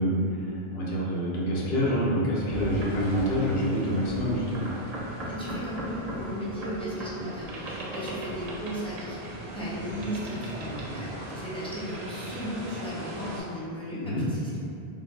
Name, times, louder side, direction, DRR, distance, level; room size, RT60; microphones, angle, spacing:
voice 1, 0.0-4.7 14.0-14.3, equal, 80° left, -5 dB, 0.9 m, -27 dB
sound 1, 2.5-13.4, right 1 dB, 50° right, 0.5 m, -38 dB
voice 2, 5.3-14.6, equal, 5° left, -10 dB, 0.6 m, -36 dB
3.4 x 2.0 x 3.1 m, 2.6 s
omnidirectional pair, 1.0 m